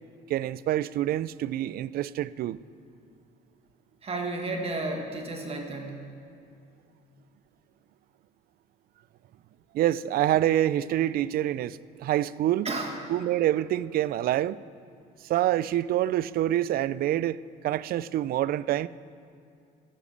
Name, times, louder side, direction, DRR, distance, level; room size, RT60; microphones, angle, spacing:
voice 1, 0.3-2.6 9.7-12.7 13.1-14.6 15.2-17.4 17.6-18.9, right 13 dB, 60° right, 0.4 m, -26 dB
voice 2, 4.0-6.0 12.6-13.0, right 2 dB, 35° right, 1.5 m, -32 dB
13.5 x 11.5 x 6.8 m
cardioid pair, 110°, 17 cm